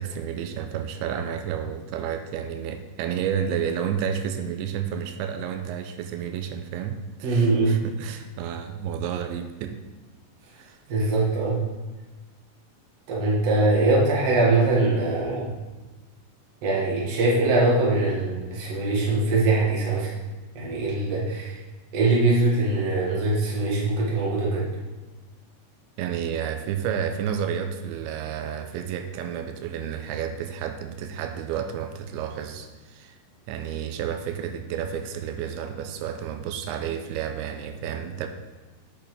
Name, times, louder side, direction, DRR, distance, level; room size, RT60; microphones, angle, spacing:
voice 1, 0.0-9.8 10.5-10.8 26.0-33.2 33.5-38.3, right 8 dB, 90° right, 6 dB, 2.9 m, -31 dB
voice 2, 7.2-7.8 10.9-11.6 13.1-15.5 16.6-20.1 20.5-21.6 21.9-24.7, right 2 dB, 45° right, -5 dB, 2.2 m, -22 dB
8.5 x 8.4 x 3.4 m, 1.2 s
omnidirectional pair, 5.2 m